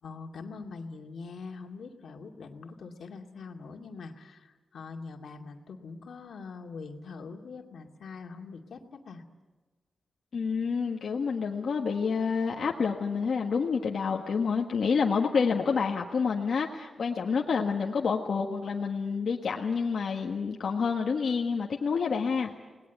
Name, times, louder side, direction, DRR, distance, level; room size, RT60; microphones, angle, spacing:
voice 1, 0.0-9.2, left 4 dB, 85° left, 3 dB, 2.3 m, -43 dB
voice 2, 10.3-22.5, left 5 dB, 70° left, 0 dB, 1.6 m, -28 dB
29.0 x 19.5 x 8.3 m, 1.3 s
wide cardioid pair, 120°, 0 cm